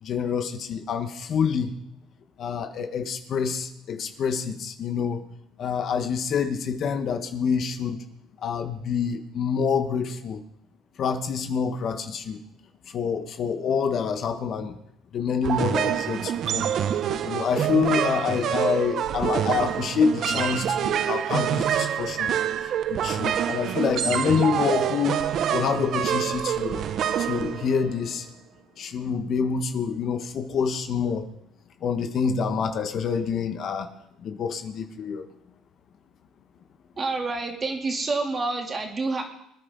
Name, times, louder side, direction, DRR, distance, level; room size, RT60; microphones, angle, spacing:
voice 1, 0.0-1.7 2.4-5.2 5.6-8.0 8.4-10.4 11.0-12.4 12.9-14.7 15.1-16.7 17.2-22.4 22.6-25.2 25.5-26.8 27.2-28.3 28.8-31.3 31.8-33.9 34.2-35.3, left 6 dB, 50° left, 7 dB, 1.4 m, -27 dB
sound 1, 15.4-28.1, right 9 dB, 55° right, 0.8 m, -26 dB
voice 2, 37.0-39.2, right 3 dB, 30° right, 2 dB, 3.1 m, -28 dB
24.5 x 10.0 x 4.1 m, 0.77 s
cardioid pair, 100°, 0 cm